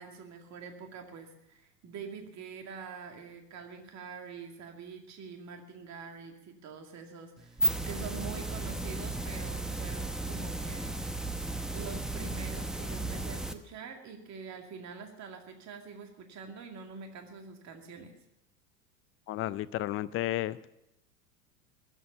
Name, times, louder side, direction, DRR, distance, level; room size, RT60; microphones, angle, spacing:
voice 1, 0.0-11.0 11.7-18.1, right 5 dB, 35° right, 3 dB, 2.4 m, -45 dB
sound 1, 7.4-13.5, right 2 dB, ahead, 0.9 m, -34 dB
voice 2, 19.3-20.6, left 14 dB, 30° left, 17 dB, 0.5 m, -32 dB
21.0 x 8.3 x 6.7 m, 0.88 s
hypercardioid pair, 85°, 49 cm